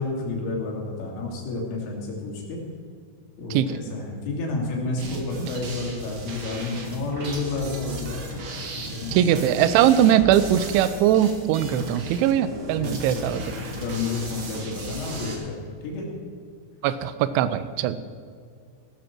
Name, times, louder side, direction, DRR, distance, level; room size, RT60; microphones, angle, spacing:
voice 1, 0.0-2.6 3.4-8.2 8.7-9.2 11.7-11.9 12.8-16.1, left 3 dB, 75° left, -2 dB, 5.3 m, -30 dB
sound 1, 5.0-15.3, right 1 dB, 55° right, 1.8 m, -36 dB
voice 2, 9.1-13.4 16.8-18.0, right 10 dB, 80° right, 13 dB, 2.8 m, -20 dB
17.5 x 13.0 x 4.6 m, 2.2 s
omnidirectional pair, 5.8 m